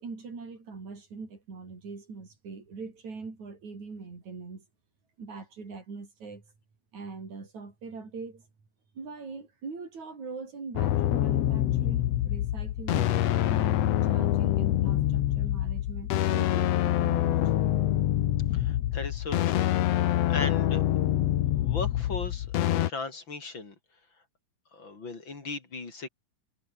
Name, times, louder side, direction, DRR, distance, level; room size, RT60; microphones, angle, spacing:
voice 1, 0.0-4.7 5.2-6.4 6.9-8.5 9.0-13.1 13.5-17.4, right 4 dB, 50° right, 6.9 m, -42 dB
Chasing Molly, 10.8-22.9, left 13 dB, 70° left, 1.5 m, -26 dB
voice 2, 18.5-20.8 21.6-22.5 22.7-23.7 24.7-26.1, left 3 dB, 30° left, 4.1 m, -37 dB
omnidirectional pair, 4.2 m